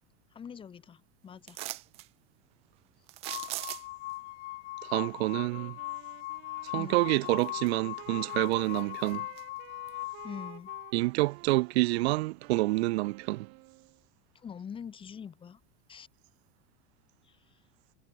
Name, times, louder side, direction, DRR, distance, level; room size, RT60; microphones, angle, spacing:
voice 1, 0.3-1.6 6.7-7.0 10.2-10.7 14.3-15.6 15.9-16.1 17.2-17.6, left 7 dB, 15° left, 2.2 m, -44 dB
sound 1, 1.5-2.1 3.1-4.1 6.7-6.8 7.3-8.0 8.3-9.4 9.9-10.0, right 18 dB, 20° right, 0.3 m, -40 dB
sound 2, 3.2-10.9, left 19 dB, 75° left, 2.1 m, -40 dB
voice 2, 4.8-5.8 6.6-9.3 10.9-13.5, right 21 dB, 70° right, 1.5 m, -28 dB
Wind instrument woodwind instrument, 5.2-14.0, right 28 dB, 40° right, 3.0 m, -52 dB
supercardioid pair, 180°, 34 cm